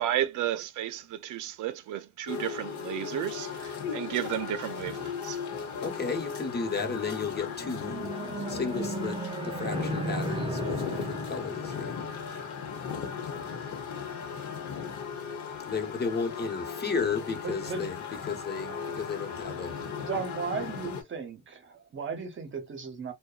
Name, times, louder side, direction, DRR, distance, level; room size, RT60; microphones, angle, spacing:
voice 1, 0.0-5.4, right 12 dB, 80° right, 0.5 m, -33 dB
sound 1, 2.3-21.0, left 6 dB, 75° left, 1.0 m, -36 dB
voice 2, 5.8-12.0 15.7-18.0 18.3-19.7, left 5 dB, 35° left, 1.1 m, -34 dB
sound 2, 7.3-12.8, right 3 dB, 20° right, 0.4 m, -36 dB
voice 3, 17.4-17.9 18.7-19.0 19.9-23.1, right 5 dB, 40° right, 0.8 m, -36 dB
2.7 x 2.2 x 2.3 m
cardioid pair, 90°, 30 cm